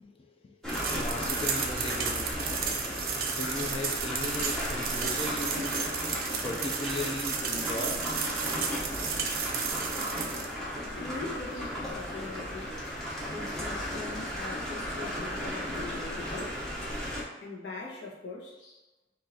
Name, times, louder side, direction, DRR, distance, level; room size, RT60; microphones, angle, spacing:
voice 1, 0.0-2.8 3.3-5.8 6.4-8.0, left 2 dB, 30° left, 3 dB, 0.5 m, -37 dB
sound 1, 0.6-17.2, equal, 5° left, 0.8 m, -35 dB
sound 2, 0.7-10.5, right 6 dB, 55° right, 0.5 m, -33 dB
voice 2, 10.9-12.9 13.3-16.6 17.4-18.9, left 3 dB, 90° left, -3 dB, 1.1 m, -42 dB
4.2 x 2.8 x 3.9 m, 1.1 s
head